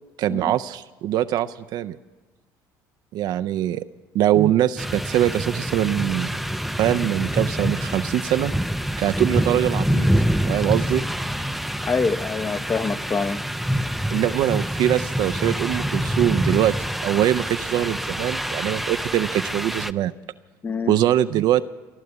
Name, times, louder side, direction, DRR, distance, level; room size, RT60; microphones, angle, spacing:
voice 1, 0.2-2.0 3.1-3.8 4.1-6.3 6.8-8.5 9.0-10.1 10.5-11.0 14.1-16.7 17.0-20.1 20.9-21.6, right 12 dB, 65° right, 11 dB, 0.5 m, -22 dB
sound 1, 4.8-19.9, equal, ahead, 0.4 m, -26 dB
voice 2, 11.8-13.4 20.6-21.0, left 4 dB, 30° left, 11 dB, 0.8 m, -25 dB
15.5 x 11.0 x 8.0 m, 1.2 s
supercardioid pair, 80°, 8 cm